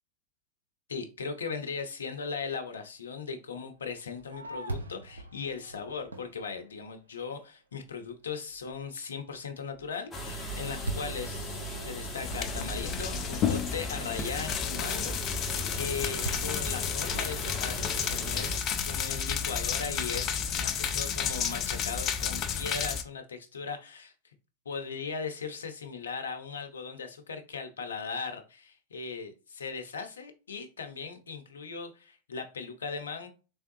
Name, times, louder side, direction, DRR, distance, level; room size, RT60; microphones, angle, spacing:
voice 1, 0.9-24.1 24.7-33.3, left 5 dB, 80° left, 7 dB, 0.7 m, -38 dB
Fireworks, 3.8-7.3 7.9-8.0 8.5-8.9 9.3-14.2 16.2-17.6, right 1 dB, 90° right, 0.6 m, -43 dB
sound 1, 10.1-18.6, equal, 20° left, 1.2 m, -38 dB
sound 2, 12.2-23.0, left 7 dB, 40° left, 0.5 m, -32 dB
3.5 x 3.5 x 2.7 m, 0.33 s
hypercardioid pair, 90°, 0 cm